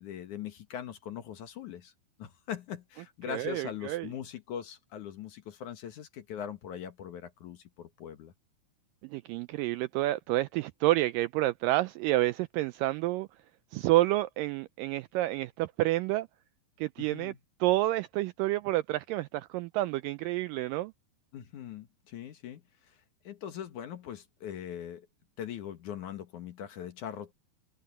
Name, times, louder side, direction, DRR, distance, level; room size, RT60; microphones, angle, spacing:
voice 1, 0.0-1.9 2.2-8.3 17.0-17.4 21.3-23.0 23.2-25.1 25.4-27.3, left 9 dB, 60° left, 2.6 m, -41 dB
voice 2, 3.3-4.1 9.0-13.3 13.7-16.3 16.8-17.3 17.6-20.9, right 17 dB, 85° right, 2.0 m, -29 dB
omnidirectional pair, 4.3 m